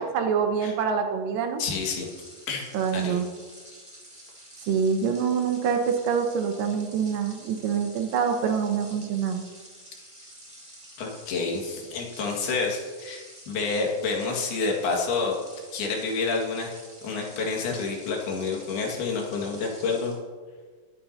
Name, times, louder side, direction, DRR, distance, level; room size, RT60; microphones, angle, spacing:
voice 1, 0.0-1.6 2.7-3.3 4.7-9.4, right 6 dB, 75° right, 5 dB, 2.3 m, -25 dB
voice 2, 1.6-2.1 2.5-2.6 2.9-3.2 11.0-15.4 15.7-16.7 17.0-20.2, left 4 dB, 90° left, 0 dB, 3.9 m, -28 dB
sound 1, 1.6-20.2, equal, ahead, 3.1 m, -49 dB
22.5 x 9.2 x 2.8 m, 1.5 s
omnidirectional pair, 4.3 m